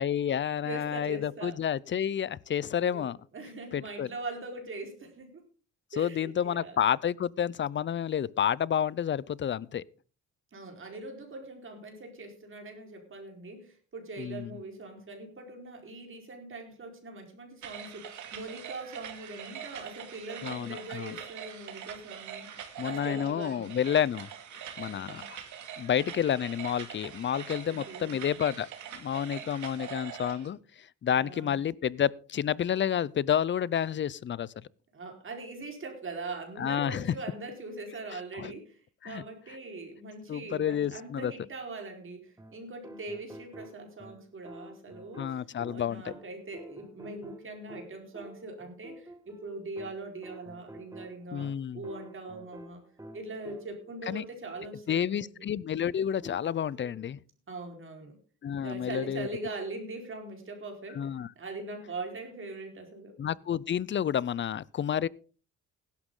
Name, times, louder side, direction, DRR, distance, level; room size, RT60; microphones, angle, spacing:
voice 1, 0.0-3.2 3.7-4.1 6.0-9.8 14.2-14.5 20.4-21.2 22.8-24.3 24.8-25.4 25.8-34.5 36.6-37.1 38.3-38.5 39.0-39.2 40.3-41.3 45.2-46.1 51.3-51.8 54.1-54.2 54.9-57.2 58.4-59.3 60.9-61.3 63.2-65.1, left 9 dB, 40° left, 0.6 m, -30 dB
voice 2, 0.6-1.6 2.9-3.1 3.3-5.4 5.9-6.8 10.5-23.8 24.9-25.3 27.6-28.1 31.1-31.6 34.9-52.8 53.1-55.5 57.5-58.2 58.6-61.1 61.4-63.2, right 3 dB, 40° right, 4.6 m, -42 dB
sound 1, 17.6-30.5, right 9 dB, 75° right, 2.6 m, -43 dB
sound 2, 42.4-54.0 56.2-57.1, right 1 dB, 10° right, 2.0 m, -50 dB
16.0 x 12.0 x 3.8 m
cardioid pair, 90°, 30 cm